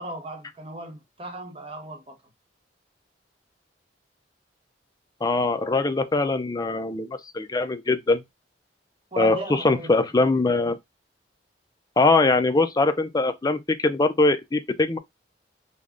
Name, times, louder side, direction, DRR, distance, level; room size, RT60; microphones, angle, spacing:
voice 1, 0.0-2.2 9.1-9.9, right 2 dB, 30° right, 0.9 m, -36 dB
voice 2, 5.2-8.2 9.2-10.8 12.0-15.0, left 3 dB, 20° left, 0.4 m, -22 dB
3.5 x 2.1 x 3.6 m
head